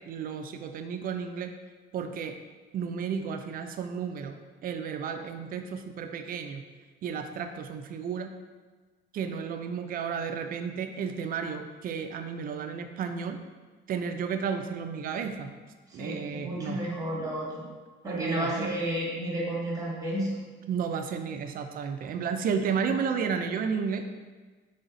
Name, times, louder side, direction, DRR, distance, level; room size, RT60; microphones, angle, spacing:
voice 1, 0.0-1.5 1.9-2.3 2.7-6.6 7.0-8.3 9.1-13.4 13.9-15.5 15.9-16.8 18.1-18.7 20.7-24.0, right 6 dB, 50° right, 7 dB, 0.4 m, -32 dB
voice 2, 15.9-17.5 18.0-20.3, right 1 dB, 20° right, -4 dB, 1.2 m, -31 dB
3.9 x 3.4 x 3.9 m, 1.4 s
cardioid pair, 160°, 20 cm